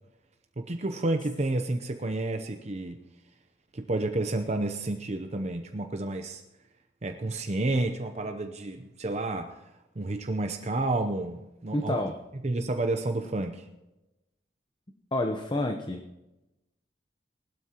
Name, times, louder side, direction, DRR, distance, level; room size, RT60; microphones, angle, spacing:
voice 1, 0.6-3.0 3.7-6.4 7.0-9.5 10.0-12.0 12.4-13.7, right 2 dB, 40° right, 6 dB, 0.7 m, -30 dB
voice 2, 11.7-12.2 15.1-16.0, left 1 dB, 25° left, 5 dB, 0.8 m, -29 dB
19.5 x 12.5 x 2.9 m, 0.98 s
head